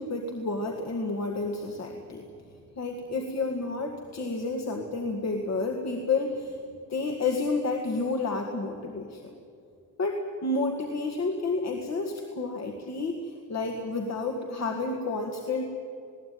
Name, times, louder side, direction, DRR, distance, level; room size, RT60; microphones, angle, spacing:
voice 1, 0.0-2.2 2.8-6.6 6.9-9.3 10.0-15.6, left 3 dB, 60° left, 2 dB, 2.0 m, -30 dB
20.5 x 17.0 x 9.5 m, 2.5 s
wide cardioid pair, 145°, 31 cm